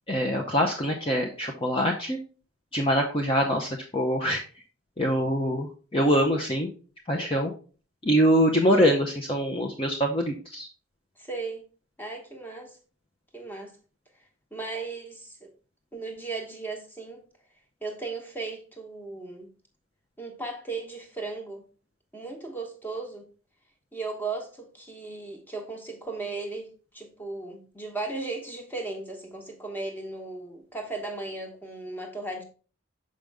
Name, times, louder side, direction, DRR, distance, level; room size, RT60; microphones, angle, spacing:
voice 1, 0.1-2.2 2.7-4.4 5.0-6.7 7.1-7.5 8.0-10.7, equal, 25° left, 0.6 m, -24 dB
voice 2, 11.2-11.6 12.0-12.8 13.3-13.8 14.5-15.5 15.9-17.3 17.8-19.5 20.2-21.6 22.1-23.3 23.9-32.4, right 3 dB, 10° left, 1.1 m, -36 dB
6.4 x 5.2 x 3.5 m
head